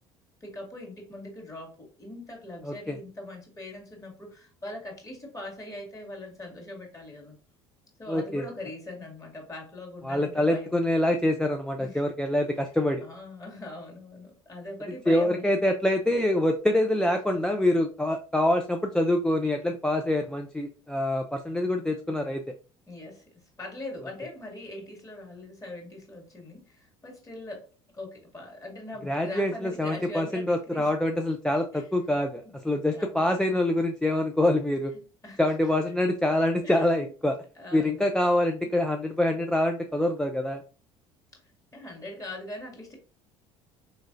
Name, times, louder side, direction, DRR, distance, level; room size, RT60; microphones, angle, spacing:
voice 1, 0.4-7.4 8.0-10.9 11.8-12.0 13.0-15.5 22.9-27.7 27.9-30.9 31.7-31.9 32.4-32.5 32.9-33.6 34.9-35.7 36.6-37.1 37.6-38.1 38.6-38.7 41.3-41.4 41.7-43.0, left 1 dB, 20° left, -1 dB, 1.9 m, -41 dB
voice 2, 2.6-3.0 8.1-8.4 10.0-13.0 15.1-22.4 29.0-34.9 35.4-37.3 37.7-40.6, left 1 dB, 5° left, 4 dB, 0.4 m, -25 dB
3.6 x 3.1 x 2.5 m, 0.38 s
hypercardioid pair, 70°, 15 cm